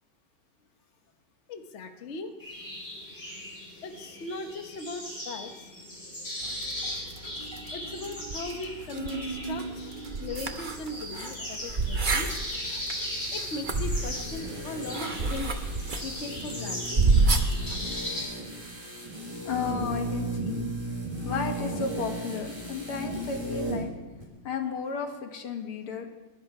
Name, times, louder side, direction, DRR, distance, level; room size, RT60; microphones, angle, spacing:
voice 1, 1.5-2.3 3.8-5.7 7.7-9.9 10.2-12.4 13.3-15.6 16.0-17.0, left 3 dB, 45° left, 5 dB, 1.1 m, -38 dB
sound 1, 2.4-18.2, left 1 dB, 25° left, 7.0 m, -38 dB
sound 2, 6.4-17.8, right 3 dB, 40° right, 0.7 m, -30 dB
sound 3, 13.2-23.9 24.2-24.3, right 1 dB, 15° right, 3.2 m, -36 dB
voice 2, 19.5-20.5 21.3-23.9 24.4-26.1, left 5 dB, 85° left, 4 dB, 2.4 m, -33 dB
22.5 x 11.0 x 4.8 m, 1.1 s
omnidirectional pair, 2.3 m